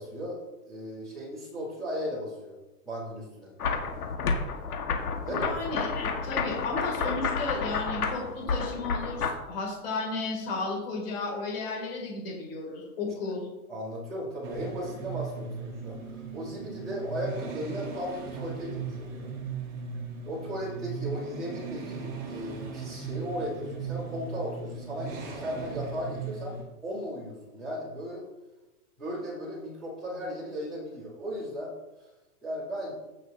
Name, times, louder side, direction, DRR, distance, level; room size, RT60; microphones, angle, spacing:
voice 1, 0.0-2.6 2.8-3.5 5.2-5.5 13.7-19.3 20.2-28.2 29.0-31.7 32.4-32.9, equal, ahead, -15 dB, 0.5 m, -36 dB
sound 1, 3.6-9.3, left 5 dB, 70° left, 1.6 m, -30 dB
voice 2, 5.3-13.5, left 3 dB, 40° left, -2 dB, 2.7 m, -34 dB
sound 2, 14.4-26.6, right 5 dB, 15° right, 0.8 m, -38 dB
16.0 x 6.2 x 2.7 m, 1.1 s
hypercardioid pair, 170°, 46 cm